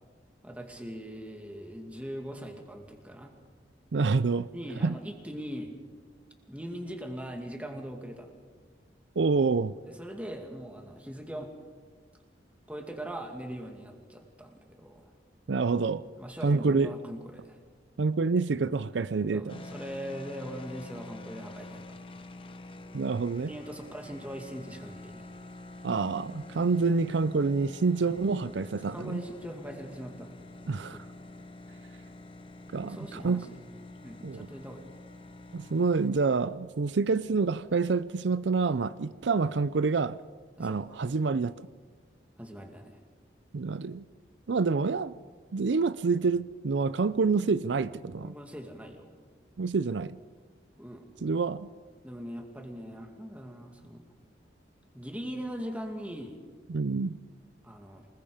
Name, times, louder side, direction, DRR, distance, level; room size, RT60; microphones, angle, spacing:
voice 1, 0.4-3.3 4.5-5.7 6.5-8.3 9.9-11.5 12.7-15.1 16.2-17.6 19.3-21.9 23.4-25.3 28.7-30.3 30.9-31.0 32.8-33.5 34.0-34.9 40.6-41.0 42.4-43.0 48.2-49.1 50.8-51.1 52.0-54.0 54.9-56.4 57.6-58.1, equal, 10° right, 2.3 m, -41 dB
voice 2, 3.9-4.5 4.8-4.9 9.2-9.7 15.5-16.0 16.4-16.9 18.0-19.6 22.9-23.5 25.8-29.2 30.7-31.0 32.7-33.4 34.2-34.5 35.5-40.2 40.6-41.7 43.5-44.0 44.5-45.1 45.5-48.3 49.6-50.2 51.2-51.7 56.7-57.2, right 4 dB, 80° right, 0.5 m, -27 dB
sound 1, 19.5-36.1, left 2 dB, 30° left, 0.9 m, -47 dB
27.5 x 20.5 x 5.1 m
head